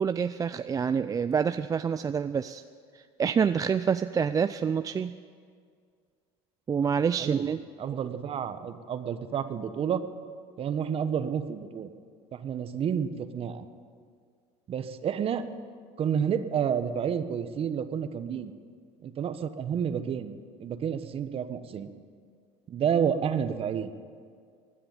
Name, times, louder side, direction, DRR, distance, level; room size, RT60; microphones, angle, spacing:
voice 1, 0.0-2.6 2.9-5.2 6.7-7.6 7.9-8.0, right 6 dB, 25° right, 11 dB, 0.4 m, -27 dB
voice 2, 7.8-10.0 10.6-11.9 12.3-13.6 14.7-15.5 16.0-18.5 19.0-20.3 20.6-21.9 22.7-23.9, right 8 dB, 40° right, 11 dB, 1.1 m, -30 dB
16.0 x 10.0 x 8.9 m, 2.1 s
supercardioid pair, 90°, 14 cm